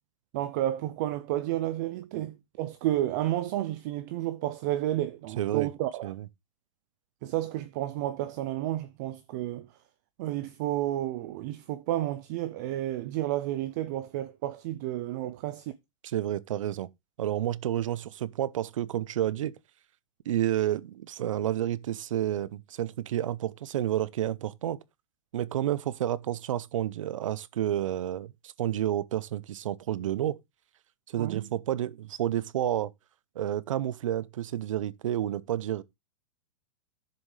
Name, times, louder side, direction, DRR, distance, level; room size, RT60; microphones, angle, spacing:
voice 1, 0.3-6.1 7.2-9.7 10.2-15.7 31.2-31.5, right 14 dB, 35° right, 0.5 m, -31 dB
voice 2, 5.4-5.7 6.0-6.2 16.1-16.9 17.2-19.6 20.3-24.8 25.3-28.3 28.6-30.4 31.1-32.9 33.4-35.8, right 12 dB, 70° right, 0.7 m, -30 dB
12.5 x 7.0 x 3.2 m
supercardioid pair, 165°, 17 cm